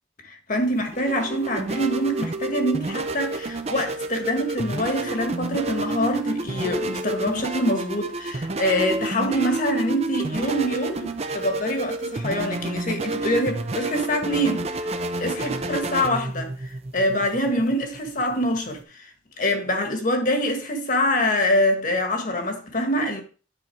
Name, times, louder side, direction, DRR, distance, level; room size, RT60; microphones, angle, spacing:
voice 1, 0.2-14.9 15.2-23.2, equal, 50° left, 1.6 m, -25 dB
sound 1, 0.6-18.8, right 2 dB, 35° right, 0.7 m, -30 dB
9.8 x 4.1 x 4.6 m
head